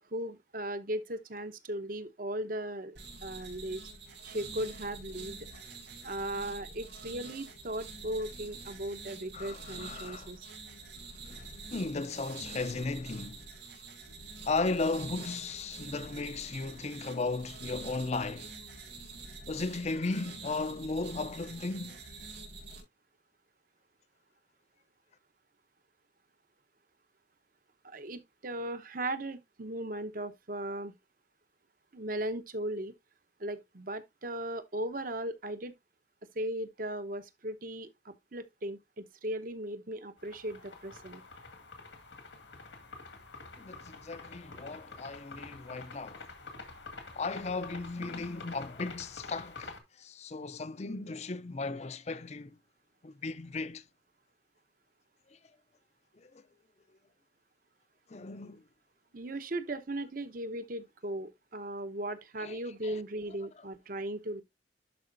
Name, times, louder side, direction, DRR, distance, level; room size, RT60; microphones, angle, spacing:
voice 1, 0.1-3.0 3.2-3.8 4.2-5.4 6.0-10.5 27.8-30.9 31.9-32.9 33.4-35.7 36.4-41.2 59.1-64.4, right 1 dB, 50° right, 0.9 m, -37 dB
sound 1, 3.0-22.8, right 3 dB, 75° right, 4.0 m, -46 dB
voice 2, 9.3-10.3 11.3-13.4 14.4-18.5 19.5-22.0 43.6-46.2 47.1-49.7 50.0-52.5 53.0-53.8 56.2-56.3 58.1-58.6 62.4-63.0, left 3 dB, 35° left, 0.5 m, -36 dB
sound 2, 40.2-49.8, left 3 dB, 85° left, 2.0 m, -47 dB
11.0 x 4.9 x 2.6 m
head